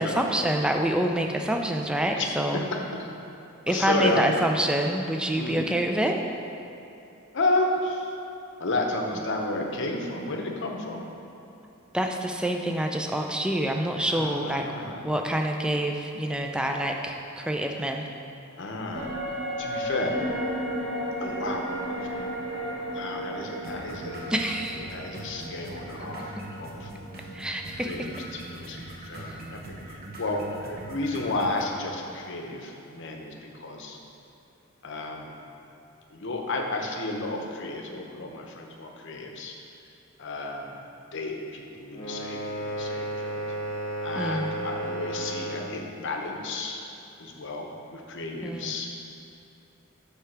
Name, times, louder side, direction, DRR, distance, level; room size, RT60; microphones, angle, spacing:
voice 1, 0.0-2.6 3.7-6.2 11.9-14.7 15.0-18.1 24.3-25.0 27.3-28.1 29.3-29.4 44.2-44.5 48.4-48.7, right 1 dB, 5° right, 3 dB, 0.3 m, -27 dB
voice 2, 3.7-4.3 5.3-5.7 7.3-8.2 8.6-11.1 14.1-15.0 18.6-19.1 19.6-20.2 21.2-22.3 22.9-24.3 24.9-26.3 26.6-27.1 27.8-28.1 28.5-34.0 34.8-35.4 36.1-39.6 40.2-40.8 41.1-43.5 44.0-46.8 47.2-48.9, left 2 dB, 60° left, 2 dB, 0.8 m, -32 dB
sound 1, 18.9-28.5 28.8-28.9, equal, 20° right, 1.5 m, -34 dB
sound 2, 23.6-31.6, right 1 dB, 45° right, 0.9 m, -42 dB
sound 3, 41.9-45.8, right 1 dB, 20° left, 1.0 m, -33 dB
7.9 x 3.3 x 5.9 m, 2.8 s
head